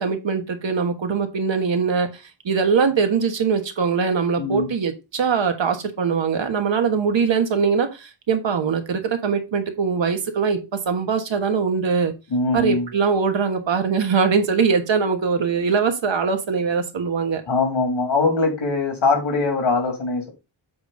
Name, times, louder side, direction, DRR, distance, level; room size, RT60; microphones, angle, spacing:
voice 1, 0.0-10.6 10.8-12.1 12.5-17.4, right 5 dB, 65° right, 1.4 m, -22 dB
voice 2, 4.4-4.7 12.3-12.9 17.5-20.3, left 3 dB, 75° left, 3.0 m, -22 dB
7.9 x 5.1 x 3.9 m
wide cardioid pair, 170°, 47 cm